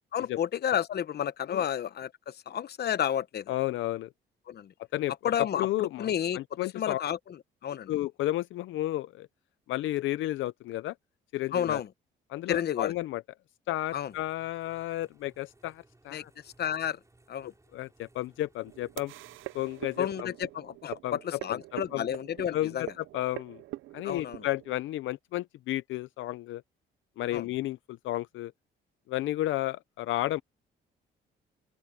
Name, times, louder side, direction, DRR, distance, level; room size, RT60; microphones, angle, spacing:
voice 1, 0.1-3.5 4.5-4.7 5.2-6.4 6.7-7.9 11.5-11.9 12.5-12.9 13.9-14.1 16.1-17.0 17.3-17.5 20.0-22.9 24.0-24.4 27.3-27.5, left 9 dB, 55° left, 0.9 m, -31 dB
voice 2, 3.5-4.1 4.9-5.1 5.4-6.1 6.3-7.0 7.9-9.3 9.7-10.9 11.3-11.8 12.3-13.2 13.7-16.3 17.7-19.1 19.5-20.3 20.9-21.6 21.9-22.0 22.5-23.6 23.9-26.6 27.2-28.5 29.1-30.4, left 15 dB, 80° left, 0.6 m, -32 dB
sound 1, 13.9-20.0, right 2 dB, 15° right, 6.0 m, -63 dB
sound 2, 18.7-24.8, right 17 dB, 90° right, 0.6 m, -44 dB
open air
cardioid pair, 90°, 20 cm